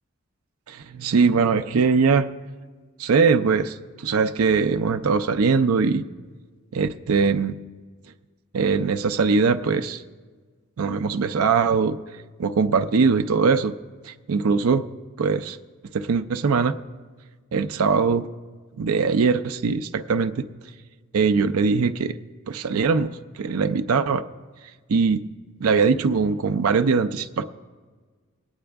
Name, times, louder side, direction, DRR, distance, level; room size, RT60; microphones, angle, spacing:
voice 1, 0.7-2.3 3.0-6.0 6.7-7.5 8.5-10.0 10.8-12.0 12.4-13.7 14.1-14.8 15.2-15.6 15.9-16.8 17.5-18.3 18.8-20.4 21.1-22.2 22.5-24.2 24.9-25.2 25.6-27.4, right 5 dB, 85° right, 9 dB, 0.5 m, -21 dB
20.0 x 8.8 x 3.4 m, 1.4 s
head